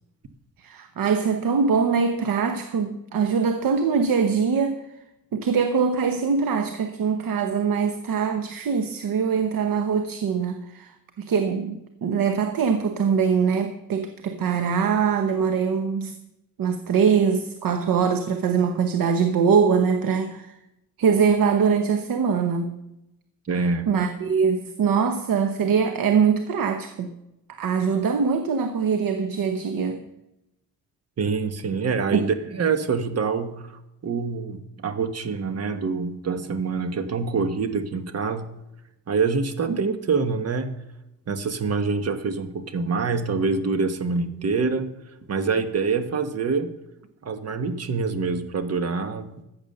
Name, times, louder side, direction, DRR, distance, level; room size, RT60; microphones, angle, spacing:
voice 1, 0.6-4.8 5.3-16.1 16.6-20.5 21.0-22.7 23.9-27.1 27.6-30.0 32.1-32.3 39.7-39.8, right 6 dB, 80° right, 7 dB, 1.0 m, -23 dB
voice 2, 23.5-23.9 31.2-33.7 34.0-38.5 39.1-40.7 41.3-44.9 45.3-46.7 47.2-49.3, right 4 dB, 45° right, 8 dB, 1.3 m, -25 dB
14.5 x 8.1 x 6.7 m, 0.89 s
wide cardioid pair, 170°, 34 cm